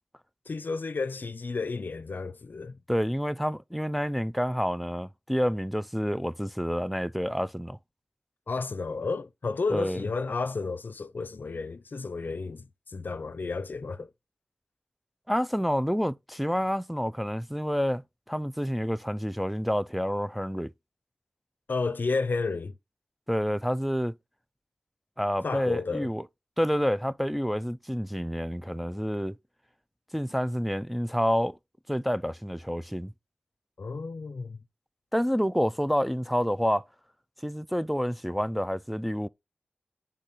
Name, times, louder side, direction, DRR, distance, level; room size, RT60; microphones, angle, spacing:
voice 1, 0.5-2.8 8.5-14.1 21.7-22.7 25.4-26.1 33.8-34.6, left 4 dB, 65° left, 0.6 m, -32 dB
voice 2, 2.9-7.8 9.7-10.0 15.3-20.7 23.3-24.1 25.2-26.3 26.6-29.4 30.1-31.6 31.9-33.1 35.1-36.8 37.4-39.3, equal, ahead, 0.3 m, -28 dB
9.9 x 3.7 x 4.1 m
wide cardioid pair, 60°, 4 cm